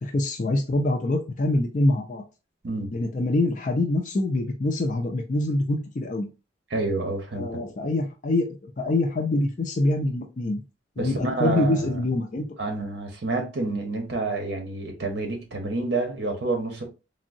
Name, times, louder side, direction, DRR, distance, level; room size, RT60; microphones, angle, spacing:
voice 1, 0.0-2.2 2.9-6.3 7.3-10.6 11.0-12.5, left 2 dB, 40° left, 0.4 m, -25 dB
voice 2, 6.7-7.7 11.0-11.9 12.6-16.8, right 2 dB, 60° right, 0.8 m, -28 dB
3.5 x 2.0 x 2.5 m
head